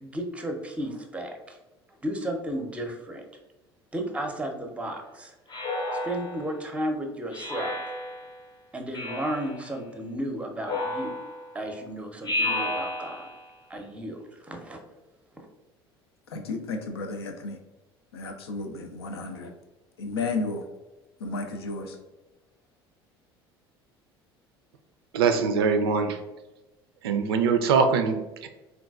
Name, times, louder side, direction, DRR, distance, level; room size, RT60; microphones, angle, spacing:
voice 1, 0.0-1.6 2.0-3.2 3.9-5.3 6.0-7.8 8.7-11.2 11.5-13.3 13.7-14.8 15.4-15.5, right 1 dB, 10° right, 3 dB, 0.6 m, -33 dB
Speech synthesizer, 5.5-6.6 7.3-8.4 8.9-9.6 10.6-11.5 12.2-13.4, left 1 dB, 35° left, 0.6 m, -32 dB
voice 2, 16.3-17.6 18.1-19.5 20.0-20.6 21.2-22.0, left 3 dB, 75° left, 5 dB, 0.4 m, -33 dB
voice 3, 25.1-26.2 27.0-28.5, right 5 dB, 70° right, 7 dB, 0.4 m, -23 dB
3.8 x 2.3 x 2.3 m, 1.1 s
figure-of-eight pair, 65°, 13 cm